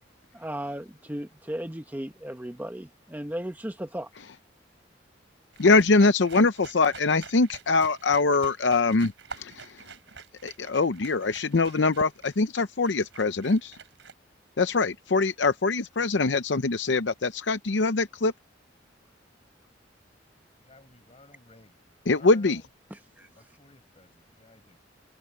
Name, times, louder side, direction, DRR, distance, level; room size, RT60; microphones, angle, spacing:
voice 1, 0.3-4.1 22.9-23.3, right 1 dB, 10° right, 0.9 m, -36 dB
sound 1, 5.5-14.1, right 5 dB, 75° right, 3.8 m, -47 dB
voice 2, 5.6-9.1 9.4-9.7 10.4-13.8 14.6-18.3 22.1-22.6, left 3 dB, 70° left, 0.7 m, -23 dB
voice 3, 20.7-21.7 22.2-22.6 23.6-24.8, left 2 dB, 30° left, 5.2 m, -54 dB
head